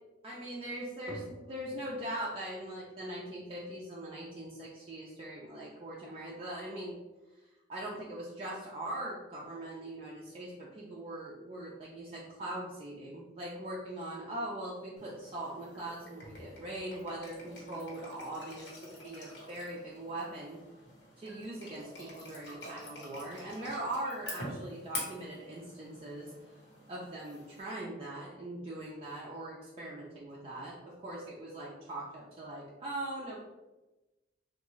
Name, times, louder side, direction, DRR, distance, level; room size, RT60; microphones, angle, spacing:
voice 1, 0.2-7.0 7.7-20.6 21.2-26.3 26.9-33.4, right 1 dB, 30° right, -5 dB, 0.5 m, -41 dB
sound 1, 15.0-27.6, left 1 dB, 80° left, 1.1 m, -47 dB
3.5 x 2.5 x 3.0 m, 1.1 s
head